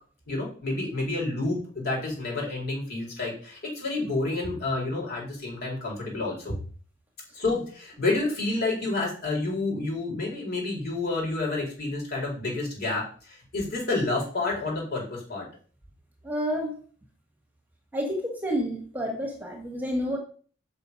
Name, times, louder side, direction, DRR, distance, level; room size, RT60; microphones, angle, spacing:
voice 1, 0.3-6.6 7.3-15.5, left 2 dB, 55° left, -3 dB, 4.7 m, -29 dB
voice 2, 16.2-16.8 17.9-20.2, equal, 10° right, 0 dB, 1.8 m, -29 dB
7.3 x 5.8 x 5.3 m, 0.43 s
head